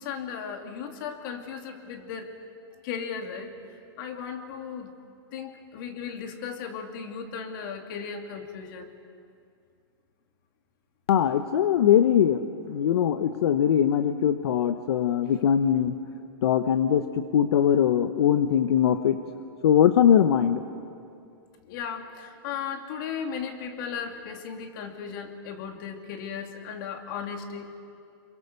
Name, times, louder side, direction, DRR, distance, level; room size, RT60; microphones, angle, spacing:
voice 1, 0.0-2.3 2.8-3.5 4.0-4.9 5.3-8.9 15.3-15.4 21.6-27.8, left 7 dB, 55° left, 4 dB, 2.7 m, -36 dB
voice 2, 11.1-12.4 12.7-15.9 16.4-19.2 19.6-20.6, left 9 dB, 80° left, 9 dB, 1.0 m, -21 dB
28.0 x 23.0 x 6.9 m, 2.5 s
supercardioid pair, 150°, 13 cm